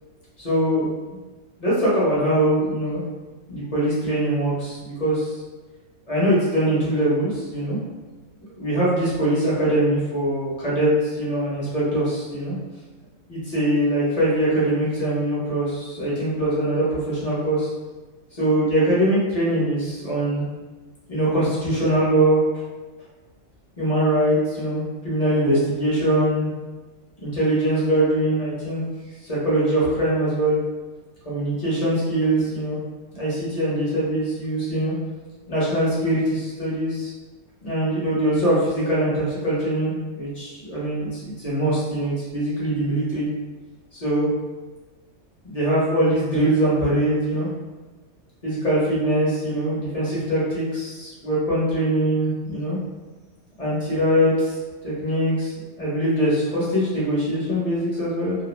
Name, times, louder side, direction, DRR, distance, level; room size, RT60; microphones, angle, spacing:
voice 1, 0.4-0.9 1.6-3.0 3.5-5.4 6.1-7.8 8.6-12.5 13.3-17.7 18.3-20.4 21.1-22.4 23.8-26.5 27.2-28.8 29.2-30.6 31.2-32.8 33.1-34.9 35.5-37.1 37.6-43.2 43.9-44.3 45.4-47.5 48.4-52.8 53.6-54.6 54.8-58.4, right 1 dB, 35° left, -8 dB, 0.7 m, -22 dB
2.4 x 2.0 x 3.1 m, 1.2 s
omnidirectional pair, 1.4 m